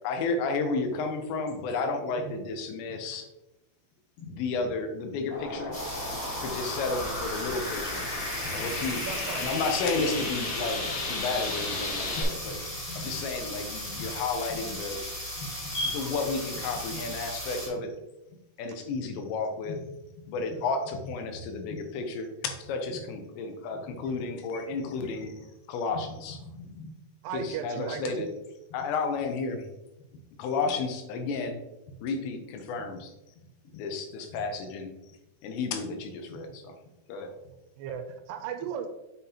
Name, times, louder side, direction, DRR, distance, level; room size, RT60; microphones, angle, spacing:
voice 1, 0.0-3.3 4.3-5.7 6.4-8.0 8.5-9.1 9.3-12.6 13.0-15.0 16.0-17.9 18.6-19.8 20.3-25.4 25.7-26.4 27.3-28.3 28.7-29.7 30.4-31.6 32.0-33.1 33.7-34.9 35.4-36.7 37.1-37.3, left 4 dB, 85° left, 5 dB, 3.1 m, -32 dB
sound 1, 5.3-12.2, left 2 dB, 55° left, 2.2 m, -34 dB
sound 2, 5.7-17.7, equal, 30° left, 1.0 m, -37 dB
voice 2, 9.1-9.5 27.2-28.1 37.8-38.9, right 8 dB, 85° right, 6 dB, 2.7 m, -36 dB
voice 3, 12.2-13.1 13.5-13.6 14.0-14.1 14.5-14.6 15.4-16.1 16.9-17.0 19.6-19.8 21.7-21.8 23.7-24.0 25.9-26.0 26.3-27.0 33.6-33.7, left 1 dB, 70° left, -3 dB, 2.3 m, -39 dB
7.1 x 5.9 x 2.8 m, 0.95 s
omnidirectional pair, 5.0 m